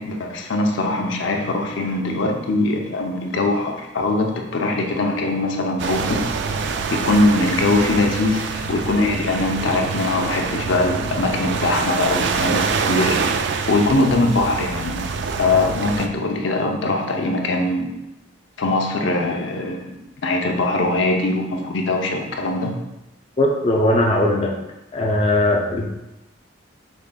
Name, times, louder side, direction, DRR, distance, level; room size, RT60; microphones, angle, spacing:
voice 1, 0.0-6.2 6.9-13.2 13.7-17.9 18.6-22.7, left 2 dB, 80° left, 2 dB, 0.6 m, -21 dB
sound 1, 5.8-16.1, right 5 dB, 65° right, 0.3 m, -25 dB
voice 2, 23.4-24.5 24.9-25.9, left 1 dB, 30° left, -1 dB, 0.4 m, -19 dB
5.2 x 3.5 x 2.2 m, 0.92 s
head